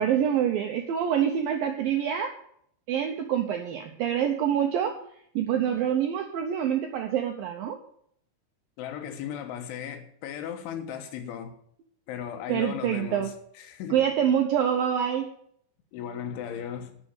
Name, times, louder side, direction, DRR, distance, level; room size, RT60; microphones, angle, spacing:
voice 1, 0.0-2.3 2.9-5.0 5.4-7.8 12.5-13.3 13.9-15.3, right 9 dB, 80° right, 2.1 m, -26 dB
voice 2, 8.8-11.5 12.1-14.1 15.9-17.0, left 8 dB, 85° left, 3.8 m, -36 dB
11.5 x 6.4 x 9.0 m
omnidirectional pair, 5.3 m